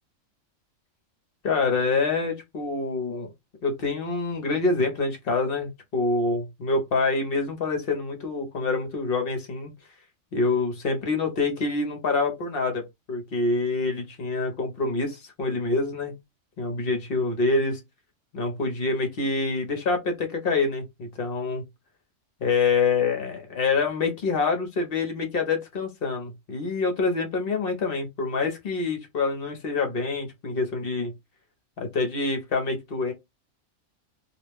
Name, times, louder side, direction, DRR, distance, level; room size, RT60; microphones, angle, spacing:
voice 1, 1.4-3.3 3.6-9.7 10.3-12.8 13.1-16.1 16.6-17.8 18.3-21.6 22.4-31.1 31.8-33.1, left 3 dB, 50° left, 0.9 m, -26 dB
2.4 x 2.1 x 3.3 m
omnidirectional pair, 1.4 m